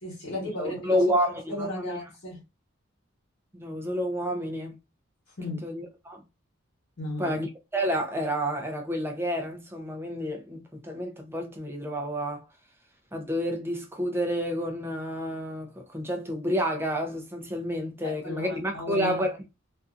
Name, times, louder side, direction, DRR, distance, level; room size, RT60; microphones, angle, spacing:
voice 1, 0.0-1.1 1.5-2.4 5.4-5.6 7.0-7.4 18.0-19.2, left 1 dB, 75° left, 1.1 m, -35 dB
voice 2, 0.6-2.0 3.5-4.7 5.6-6.2 7.2-7.5 7.7-12.4 13.1-19.4, equal, 10° right, 0.4 m, -29 dB
2.5 x 2.3 x 2.4 m
head